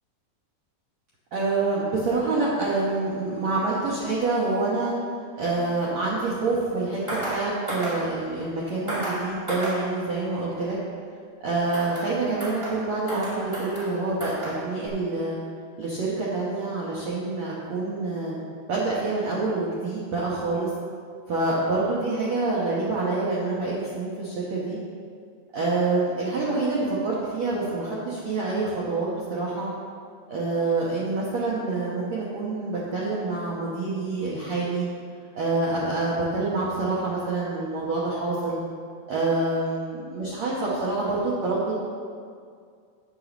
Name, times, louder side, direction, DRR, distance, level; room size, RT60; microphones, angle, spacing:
voice 1, 1.3-4.9 5.4-10.8 11.4-15.4 15.8-18.3 18.7-20.7 21.3-24.8 25.5-29.7 30.3-34.8 35.3-38.6 39.1-41.8, right 3 dB, 75° right, -6 dB, 1.6 m, -27 dB
sound 1, 7.1-7.4 7.7-8.0 8.9-9.2 9.5-9.8 11.7-12.1 12.4-12.8 13.1-13.9 14.2-14.6 14.9-15.0, right 1 dB, 25° right, 0.6 m, -32 dB
9.2 x 4.8 x 7.0 m, 2.2 s
omnidirectional pair, 5.0 m